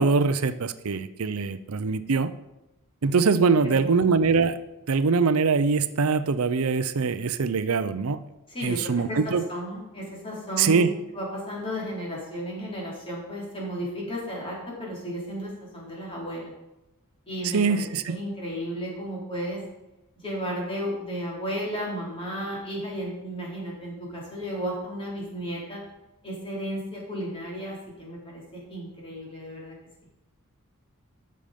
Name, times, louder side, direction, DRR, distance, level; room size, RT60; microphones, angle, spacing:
voice 1, 0.0-2.3 3.0-4.6 4.9-8.2 8.6-9.5 10.6-10.9 17.4-18.2, right 4 dB, 75° right, 12 dB, 0.6 m, -23 dB
voice 2, 3.6-4.0 8.5-10.9 11.1-16.5 17.3-19.6 20.2-25.8 26.2-28.4 28.7-29.7, equal, 25° left, -4 dB, 3.8 m, -34 dB
13.0 x 6.6 x 5.1 m, 0.96 s
head